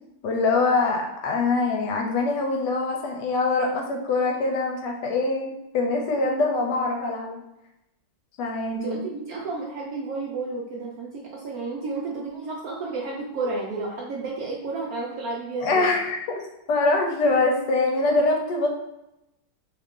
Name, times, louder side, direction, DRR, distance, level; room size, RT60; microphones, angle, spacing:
voice 1, 0.2-7.4 8.4-9.0 15.6-16.2 16.7-18.7, left 3 dB, 75° left, 2 dB, 1.1 m, -24 dB
voice 2, 8.7-15.9, right 3 dB, 75° right, -3 dB, 0.8 m, -32 dB
2.9 x 2.4 x 3.5 m, 0.91 s
omnidirectional pair, 2.0 m